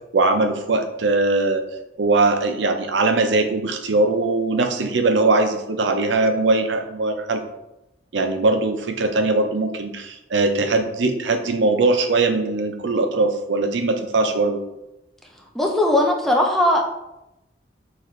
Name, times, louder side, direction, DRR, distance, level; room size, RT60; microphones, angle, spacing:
voice 1, 0.1-1.6 2.0-7.4 8.1-14.6, right 3 dB, 80° right, 6 dB, 0.6 m, -20 dB
voice 2, 15.5-16.8, left 1 dB, ahead, -1 dB, 0.5 m, -18 dB
6.3 x 2.6 x 3.1 m, 0.91 s
head